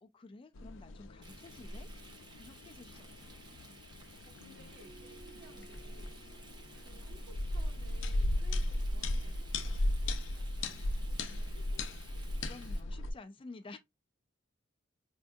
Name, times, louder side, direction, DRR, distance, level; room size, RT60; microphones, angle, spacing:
voice 1, 0.0-1.9 2.4-3.6 5.5-5.7 12.4-13.8, left 3 dB, 25° left, 0.3 m, -52 dB
sound 1, 0.6-13.1, left 1 dB, 80° left, 0.5 m, -37 dB
Frying (food), 1.2-12.8, right 3 dB, 25° right, 0.7 m, -57 dB
voice 2, 2.9-3.8 4.2-12.7, right 1 dB, 70° right, 1.1 m, -60 dB
sound 2, 4.7-9.5, right 3 dB, 90° right, 0.6 m, -60 dB
4.5 x 2.6 x 2.2 m
head